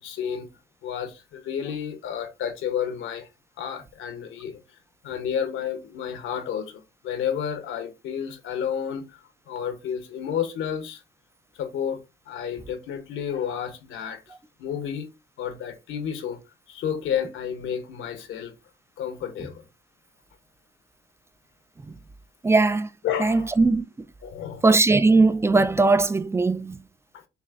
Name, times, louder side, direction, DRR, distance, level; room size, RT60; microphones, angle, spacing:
voice 1, 0.0-0.5 0.8-3.3 3.6-4.6 5.0-11.0 11.5-16.4 16.7-18.5 19.0-19.6 23.0-23.6 24.2-24.6 27.1-27.2, left 8 dB, 80° left, 0.9 m, -31 dB
voice 2, 22.4-22.9 23.2-23.8 24.6-26.8, right 3 dB, 15° right, 0.3 m, -19 dB
6.8 x 2.5 x 2.4 m
cardioid pair, 90°, 20 cm